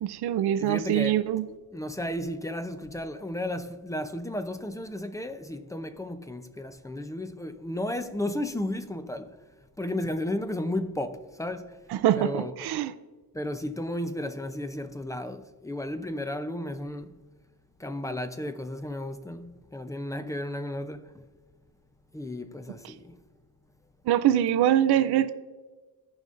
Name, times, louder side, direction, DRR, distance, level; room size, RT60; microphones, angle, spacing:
voice 1, 0.0-1.5 11.9-12.9 24.1-25.3, right 11 dB, 80° right, 0.5 m, -24 dB
voice 2, 0.6-9.4 9.8-11.8 12.2-12.5 13.3-17.2 17.8-21.3 22.1-23.2, left 1 dB, 10° left, 0.5 m, -34 dB
15.5 x 5.3 x 2.5 m
cardioid pair, 95°, 39 cm